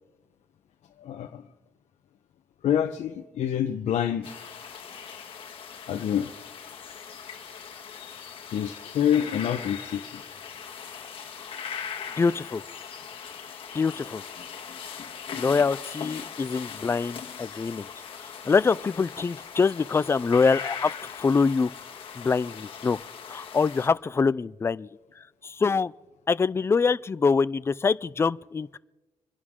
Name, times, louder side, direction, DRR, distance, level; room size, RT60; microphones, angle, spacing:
voice 1, 1.0-1.4 2.6-4.4 5.9-6.3 8.5-10.2 13.5-13.8, left 9 dB, 70° left, 0.9 m, -27 dB
sound 1, 4.2-23.9, left 7 dB, 45° left, 1.8 m, -40 dB
voice 2, 12.2-12.6 13.7-14.2 15.3-17.9 18.5-20.9 21.2-21.7 22.2-23.0 23.3-24.9 25.4-25.9 26.3-28.8, left 5 dB, 20° left, 0.4 m, -24 dB
27.0 x 11.0 x 3.7 m
cardioid pair, 120°, 12 cm